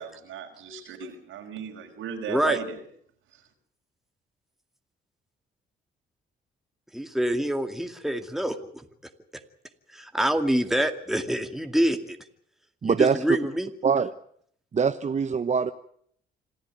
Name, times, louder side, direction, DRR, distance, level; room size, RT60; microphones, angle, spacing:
voice 1, 0.0-2.8 3.3-3.4, right 7 dB, 85° right, 4 dB, 5.5 m, -36 dB
voice 2, 2.3-2.6 6.9-8.6 9.9-12.2 12.8-13.7, equal, ahead, 6 dB, 2.4 m, -26 dB
voice 3, 12.8-13.4 13.8-14.1 14.7-15.7, right 6 dB, 35° right, 9 dB, 1.0 m, -23 dB
27.0 x 14.0 x 9.4 m, 0.65 s
cardioid pair, 90°, 20 cm